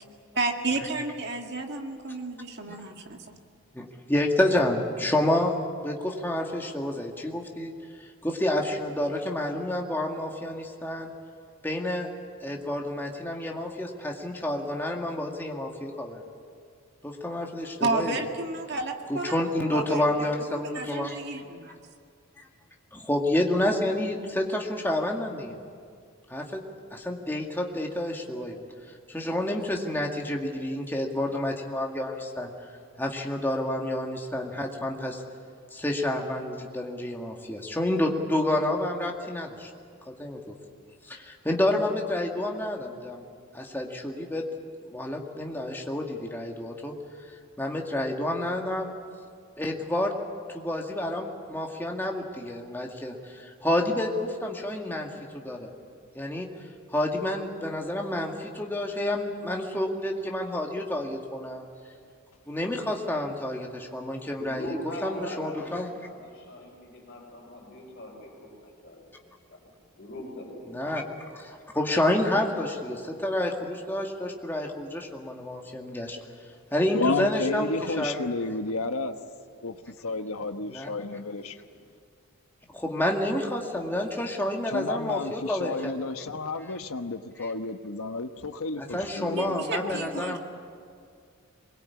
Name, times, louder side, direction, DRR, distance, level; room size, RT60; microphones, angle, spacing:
voice 1, 0.4-3.4 17.8-19.4 19.7-20.3 20.7-21.8 89.3-90.4, right 3 dB, 50° right, 3 dB, 2.0 m, -31 dB
voice 2, 3.7-5.5 5.8-7.7 8.2-11.1 11.6-12.1 12.4-16.2 17.0-18.2 19.1-21.2 22.4-22.5 22.9-25.6 26.3-26.6 26.9-28.6 29.1-32.5 33.0-35.2 35.7-39.7 40.2-40.4 41.0-43.2 43.5-44.4 44.8-46.9 47.6-48.9 49.6-50.1 50.5-55.7 56.2-56.5 56.9-61.6 62.5-64.7 65.0-65.9 70.7-71.0 71.7-76.2 76.7-78.2 80.7-80.9 82.7-85.9 87.4-87.5 88.8-90.4, left 1 dB, 10° left, 0 dB, 2.0 m, -29 dB
voice 3, 64.4-69.6 70.0-71.1, left 1 dB, 45° left, -7 dB, 5.2 m, -41 dB
voice 4, 76.9-79.2 79.6-81.6 84.7-90.0, left 3 dB, 80° left, 8 dB, 1.2 m, -31 dB
23.0 x 21.5 x 8.6 m, 2.2 s
head